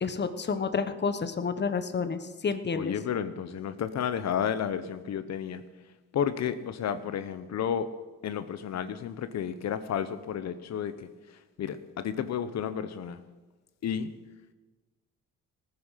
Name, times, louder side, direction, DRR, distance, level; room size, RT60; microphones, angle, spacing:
voice 1, 0.0-2.9, left 5 dB, 35° left, 10 dB, 1.2 m, -30 dB
voice 2, 2.7-5.6 6.1-7.9 8.2-11.1 11.6-13.2 13.8-14.1, left 8 dB, 60° left, 12 dB, 0.9 m, -32 dB
18.0 x 10.0 x 5.7 m, 1.3 s
cardioid pair, 90°, 30 cm